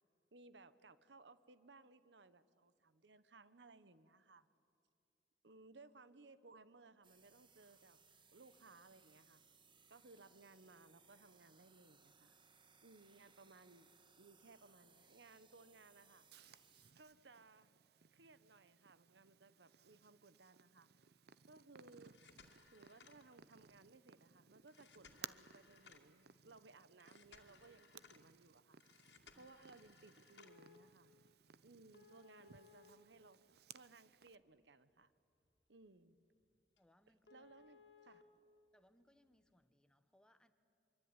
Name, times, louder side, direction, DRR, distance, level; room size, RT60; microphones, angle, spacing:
voice 1, 0.3-4.5 5.4-8.0 8.3-9.4 9.9-12.3 12.8-13.9 14.2-16.3 16.9-17.7 18.1-20.9 21.5-22.1 22.7-28.8 29.0-31.1 31.6-33.4 33.7-35.1 35.7-36.2 37.3-38.2, right 3 dB, 90° right, 14 dB, 1.1 m, -63 dB
sound 1, 7.0-16.9, right 5 dB, 30° right, 1.8 m, -69 dB
Purr, 16.3-34.3, right 8 dB, 65° right, 0.7 m, -61 dB
sound 2, 22.0-23.7 24.7-26.2 27.0-28.3 28.8-30.8 31.9-33.8 34.2-34.3 34.9-35.0 35.4-35.6 35.9-36.0 36.4-36.5 36.8-36.9 37.3-38.2 39.3-39.4, left 5 dB, 80° left, 2.4 m, -65 dB
voice 2, 36.8-37.5 38.7-40.5, left 1 dB, 5° left, 9 dB, 1.3 m, -72 dB
25.0 x 24.0 x 9.8 m, 2.6 s
head